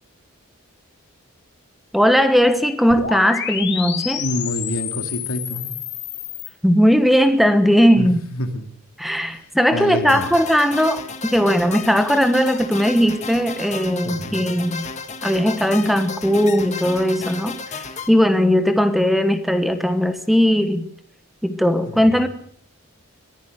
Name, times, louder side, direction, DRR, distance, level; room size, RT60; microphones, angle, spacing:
voice 1, 1.9-4.3 6.6-8.2 9.0-14.9 15.2-20.9 21.4-22.3, equal, ahead, 9 dB, 1.2 m, -18 dB
sound 1, 2.9-6.5, left 8 dB, 50° left, 3.1 m, -28 dB
voice 2, 4.2-5.7 8.0-8.1 8.3-8.6 9.2-9.3 9.7-10.3 14.0-14.4 21.9-22.0, left 1 dB, 80° left, 6 dB, 2.7 m, -27 dB
sound 2, 10.1-18.1, left 4 dB, 30° left, 1.8 m, -33 dB
22.5 x 15.0 x 8.0 m, 0.62 s
head